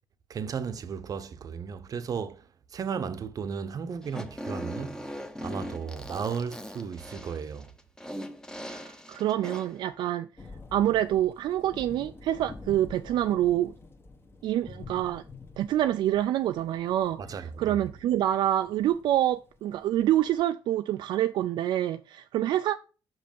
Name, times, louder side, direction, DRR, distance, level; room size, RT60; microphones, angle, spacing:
voice 1, 0.3-2.4 2.7-5.0 5.4-7.7 17.2-17.8, right 6 dB, 45° right, 0.8 m, -34 dB
Fart, 4.0-9.8, equal, 10° left, 0.9 m, -40 dB
voice 2, 8.7-10.3 10.7-13.7 14.4-15.2 15.6-22.8, right 12 dB, 70° right, 0.3 m, -26 dB
sound 1, 10.4-20.4, left 3 dB, 30° left, 1.2 m, -48 dB
5.5 x 5.3 x 5.3 m
cardioid pair, 85°, 8 cm